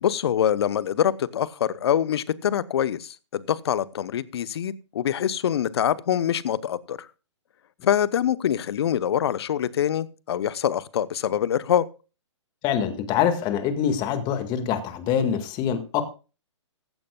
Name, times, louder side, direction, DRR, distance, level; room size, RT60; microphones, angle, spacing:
voice 1, 0.0-7.0 7.8-11.9, left 9 dB, 55° left, 18 dB, 0.9 m, -24 dB
voice 2, 12.6-16.0, left 8 dB, 25° left, 9 dB, 1.9 m, -25 dB
15.5 x 15.0 x 2.3 m, 0.33 s
figure-of-eight pair, 125°, 16 cm